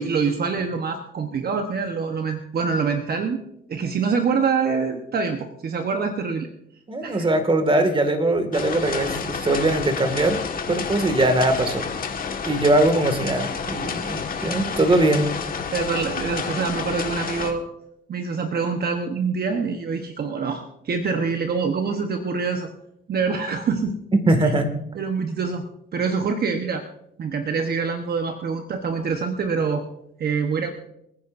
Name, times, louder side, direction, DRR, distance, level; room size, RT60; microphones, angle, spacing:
voice 1, 0.0-3.4 3.7-6.5 7.0-7.3 14.4-14.5 15.7-17.6 18.1-22.7 23.1-23.9 24.4-24.5 24.9-25.6 25.9-26.8 27.2-29.8 30.2-30.7, right 5 dB, 50° right, 5 dB, 1.2 m, -25 dB
voice 2, 6.9-10.4 10.7-11.9 12.4-15.3 24.3-24.7, right 1 dB, 25° right, 7 dB, 2.1 m, -21 dB
sound 1, 8.5-17.5, left 5 dB, 45° left, 1.7 m, -30 dB
26.5 x 9.8 x 2.6 m, 0.78 s
cardioid pair, 90°, 20 cm